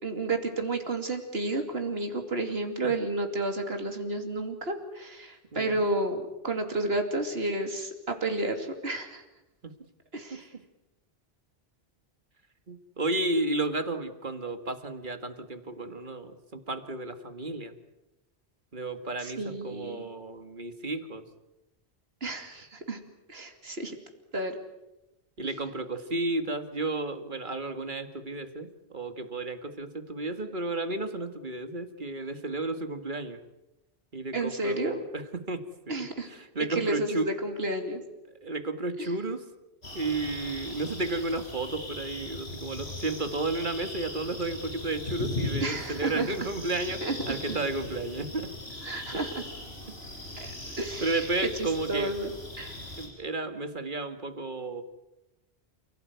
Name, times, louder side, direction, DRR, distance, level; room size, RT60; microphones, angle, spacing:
voice 1, 0.0-9.2 10.1-10.5 19.2-20.0 22.2-23.0 23.3-24.0 24.3-24.6 34.3-35.0 35.9-36.3 36.7-38.0 45.6-46.3 47.0-47.6 48.8-49.4 50.4-51.3 51.6-52.3 52.6-52.8, right 2 dB, 70° right, 5 dB, 2.9 m, -31 dB
voice 2, 12.7-17.7 18.7-21.2 25.4-33.4 34.1-36.0 36.3-37.3 38.4-39.4 39.9-48.5 49.1-49.2 50.7-52.1 53.0-54.8, right 2 dB, 50° right, 9 dB, 2.1 m, -33 dB
sound 1, 39.8-53.1, left 2 dB, 80° left, 6.5 m, -39 dB
29.0 x 17.0 x 9.4 m, 0.97 s
omnidirectional pair, 1.1 m